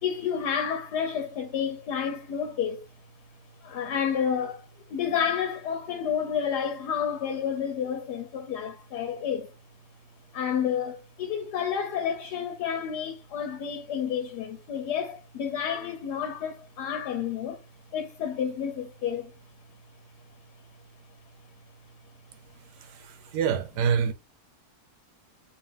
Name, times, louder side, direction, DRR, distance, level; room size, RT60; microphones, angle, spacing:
voice 1, 0.0-2.8 3.6-9.5 10.3-17.6 17.9-19.3, left 8 dB, 80° left, 1.3 m, -30 dB
voice 2, 22.8-24.1, right 7 dB, 85° right, 1.3 m, -27 dB
4.7 x 2.5 x 3.3 m
omnidirectional pair, 1.8 m